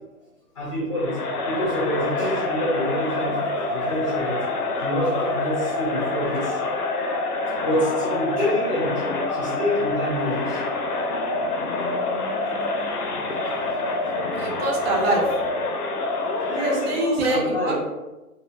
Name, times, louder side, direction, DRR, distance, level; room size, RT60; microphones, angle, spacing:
voice 1, 0.6-1.2 1.5-3.4 3.7-4.4 4.8-6.6 7.6-8.9 9.3-10.6 16.5-17.7, equal, 20° left, -7 dB, 0.7 m, -26 dB
Crowd, 1.0-17.1, left 2 dB, 80° left, 0.6 m, -26 dB
voice 2, 14.3-15.4 16.6-17.7, right 2 dB, 45° right, -1 dB, 0.5 m, -25 dB
2.1 x 2.1 x 3.1 m, 1.0 s
hypercardioid pair, 150°, 45 cm